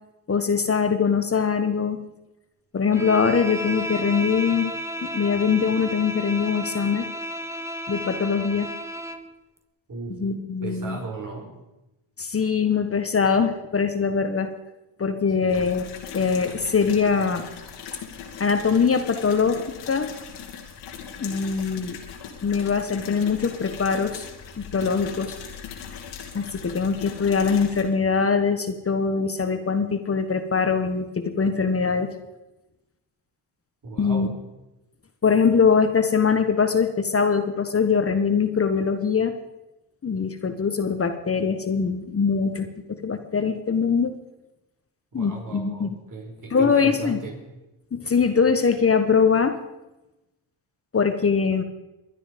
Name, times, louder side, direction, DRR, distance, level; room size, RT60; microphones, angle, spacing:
voice 1, 0.3-2.0 2.7-4.7 5.0-7.1 7.9-8.7 10.2-11.0 12.2-14.5 15.0-15.9 16.1-17.4 18.4-19.6 19.9-20.1 21.2-22.0 22.4-24.2 24.7-25.3 26.3-32.1 34.0-34.4 35.2-39.3 40.0-44.1 45.1-45.9 46.5-47.2 47.9-49.6 50.9-51.6, left 5 dB, 30° left, 7 dB, 1.4 m, -22 dB
Bowed string instrument, 2.9-9.3, equal, 5° right, 1.4 m, -32 dB
voice 2, 10.6-11.5 15.4-15.6 33.8-34.3 45.1-47.3, right 3 dB, 45° right, 1 dB, 4.9 m, -36 dB
sound 1, 15.5-27.8, left 7 dB, 85° left, 2.5 m, -39 dB
22.5 x 10.0 x 5.3 m, 0.98 s
supercardioid pair, 70°, 42 cm